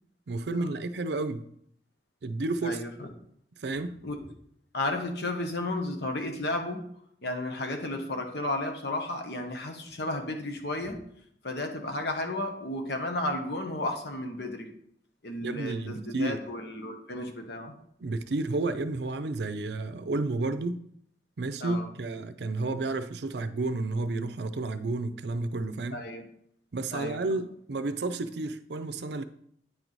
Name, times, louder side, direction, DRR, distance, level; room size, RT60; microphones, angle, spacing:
voice 1, 0.3-1.5 2.2-2.8 3.6-4.0 15.4-16.4 18.0-20.8 21.4-26.0 26.7-29.2, right 2 dB, 70° right, 0.5 m, -31 dB
voice 2, 2.6-3.1 4.0-4.2 4.7-6.8 7.2-11.0 11.4-14.7 15.2-17.7 21.6-21.9 25.9-26.3 26.9-27.4, left 2 dB, 70° left, 1.2 m, -33 dB
9.4 x 4.6 x 4.0 m
head